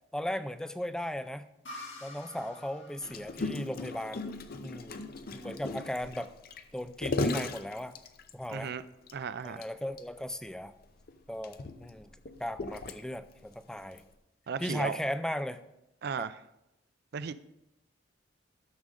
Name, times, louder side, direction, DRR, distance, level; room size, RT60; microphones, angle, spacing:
voice 1, 0.1-1.5 2.0-4.3 4.6-5.0 5.3-6.3 6.7-7.9 8.3-8.7 9.4-10.7 11.3-12.1 12.4-14.0 14.6-15.6 16.2-16.3, left 1 dB, 5° left, 12 dB, 0.4 m, -36 dB
sound 1, 1.6-5.2, left 2 dB, 80° left, 1.8 m, -49 dB
Gurgling, 3.0-8.5 9.1-9.2 9.4-9.6 10.0-10.1 10.8-13.3 14.0-14.1, left 2 dB, 50° left, 0.6 m, -36 dB
voice 2, 8.5-8.8 9.1-9.6 14.5-15.0 16.0-16.4 17.1-17.3, right 6 dB, 60° right, 15 dB, 0.4 m, -35 dB
12.5 x 6.2 x 3.7 m, 0.88 s
head